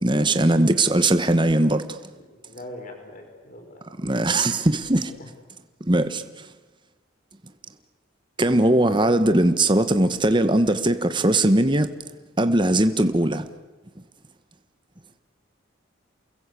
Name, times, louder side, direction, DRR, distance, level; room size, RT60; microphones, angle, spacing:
voice 1, 0.0-2.0 4.0-5.1 5.9-6.2 8.4-11.9 12.4-13.4, right 1 dB, 25° right, 1.2 m, -20 dB
voice 2, 2.5-3.8, left 1 dB, 40° left, 4.9 m, -40 dB
29.0 x 21.5 x 8.5 m
head